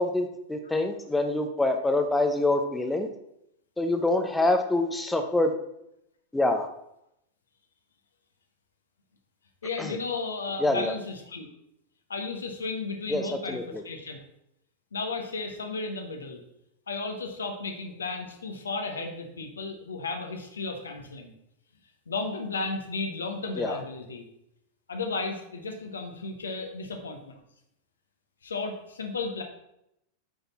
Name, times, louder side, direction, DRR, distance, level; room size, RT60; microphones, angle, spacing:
voice 1, 0.0-3.1 3.8-5.5 6.3-6.7 9.8-10.0 10.6-10.9 13.1-13.8 23.6-23.8, left 2 dB, 5° left, 5 dB, 0.8 m, -26 dB
voice 2, 9.6-11.5 12.1-14.2 14.9-16.4 16.9-21.3 22.1-24.3 24.9-27.3 28.4-29.4, left 3 dB, 70° left, 4 dB, 1.2 m, -34 dB
8.7 x 5.4 x 4.1 m, 0.80 s
figure-of-eight pair, 90°, 0 cm